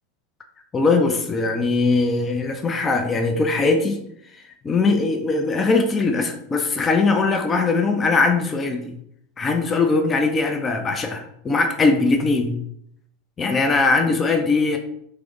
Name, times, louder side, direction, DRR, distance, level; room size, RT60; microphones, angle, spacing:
voice 1, 0.7-4.0 4.6-8.9 9.4-12.6 13.4-14.8, left 3 dB, 25° left, 5 dB, 0.6 m, -20 dB
3.4 x 3.3 x 3.6 m, 0.72 s
figure-of-eight pair, 85°, 0 cm